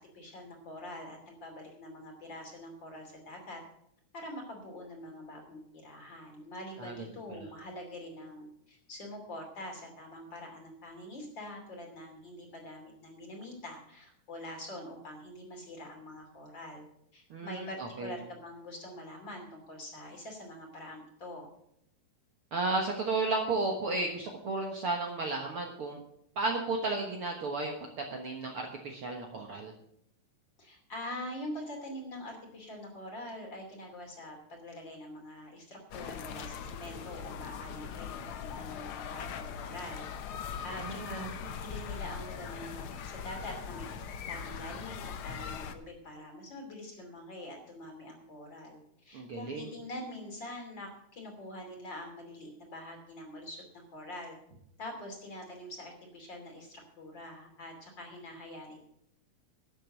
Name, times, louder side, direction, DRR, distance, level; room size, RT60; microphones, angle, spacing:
voice 1, 0.0-3.6 4.1-16.8 17.1-21.5 30.6-40.0 40.6-43.9 44.3-54.4 54.8-58.8, left 1 dB, 35° left, 2 dB, 3.3 m, -45 dB
voice 2, 17.3-18.1 22.5-26.0 26.4-29.7 40.8-41.3 49.1-49.7, right 3 dB, 55° right, 2 dB, 1.8 m, -33 dB
sound 1, 35.9-45.8, left 7 dB, 85° left, 1.1 m, -41 dB
12.0 x 7.7 x 7.6 m, 0.73 s
omnidirectional pair, 3.6 m